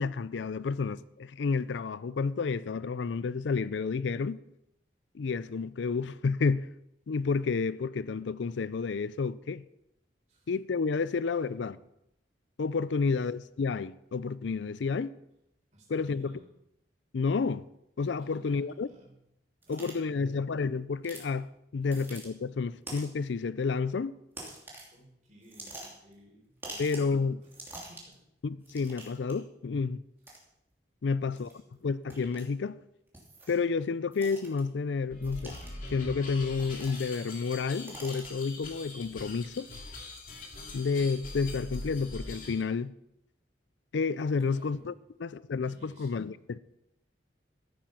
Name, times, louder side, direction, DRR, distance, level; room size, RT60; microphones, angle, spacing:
voice 1, 0.0-4.4 5.1-6.7 7.1-9.6 10.5-11.8 12.6-15.1 15.9-16.3 17.1-17.6 18.0-18.9 19.7-21.5 21.7-24.1 26.8-27.4 28.4-30.0 31.0-31.5 31.8-32.8 33.5-35.6 35.9-39.7 40.7-42.9 43.9-44.9 45.2-46.6, left 4 dB, 85° left, 0.4 m, -30 dB
voice 2, 15.7-16.5 18.2-19.1 19.6-20.5 21.7-22.0 24.9-28.2 31.0-31.8 44.4-44.9 45.6-46.3, equal, 40° right, 4.4 m, -57 dB
sound 1, 19.6-19.9 21.0-21.3 21.8-22.3 22.9-23.2 24.3-24.9 25.4-26.1 26.6-27.1 27.4-28.1 28.6-29.3 30.2-30.4 31.4-31.5 32.1-32.4 33.1-33.6 34.1-34.6 35.2-35.9 36.5-37.3 37.6-38.5, right 2 dB, 10° right, 2.8 m, -45 dB
sound 2, 35.1-42.6, left 2 dB, 50° left, 2.5 m, -43 dB
14.0 x 9.1 x 5.9 m
head